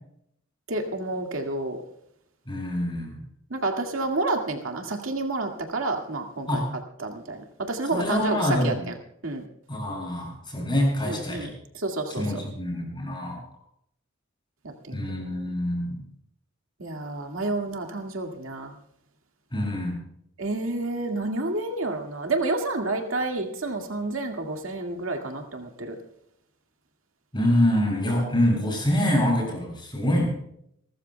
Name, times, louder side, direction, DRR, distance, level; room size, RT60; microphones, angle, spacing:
voice 1, 0.7-1.8 3.5-6.6 7.0-8.4 8.6-8.7 9.2-9.4 11.1-11.5 11.8-12.2 14.6-15.0 16.8-18.7 20.4-26.0, right 2 dB, 75° right, 3 dB, 2.1 m, -29 dB
voice 2, 2.5-3.2 6.5-6.7 7.9-8.9 9.7-11.5 12.1-13.4 14.9-16.0 19.5-20.0 27.3-30.3, left 1 dB, 25° left, 0 dB, 7.2 m, -25 dB
29.0 x 14.0 x 2.3 m, 0.72 s
head